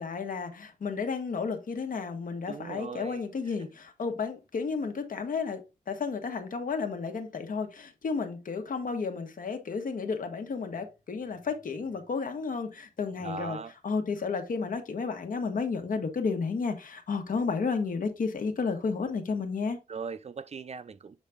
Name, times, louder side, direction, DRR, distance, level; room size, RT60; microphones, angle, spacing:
voice 1, 0.0-13.6 13.8-19.8, left 5 dB, 75° left, 1.3 m, -32 dB
voice 2, 2.5-3.2 13.2-13.7 19.9-21.2, right 5 dB, 50° right, 0.5 m, -39 dB
7.4 x 4.1 x 3.6 m
wide cardioid pair, 140°, 14 cm